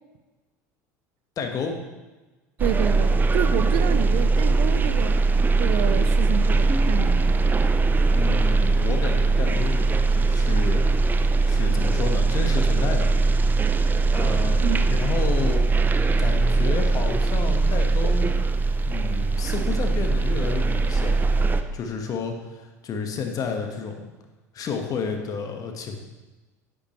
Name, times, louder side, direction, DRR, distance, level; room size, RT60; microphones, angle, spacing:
voice 1, 1.4-1.7 8.1-10.8 11.4-13.1 14.1-15.7 16.2-18.3 18.9-24.1 24.5-26.0, left 5 dB, 45° left, 4 dB, 1.5 m, -31 dB
sound 1, 2.6-21.6, right 3 dB, 20° right, 0.6 m, -21 dB
voice 2, 2.6-5.2 5.6-7.4 14.6-15.0, right 10 dB, 65° right, 11 dB, 0.6 m, -29 dB
9.8 x 8.7 x 3.2 m, 1.2 s
hypercardioid pair, 80°, 9 cm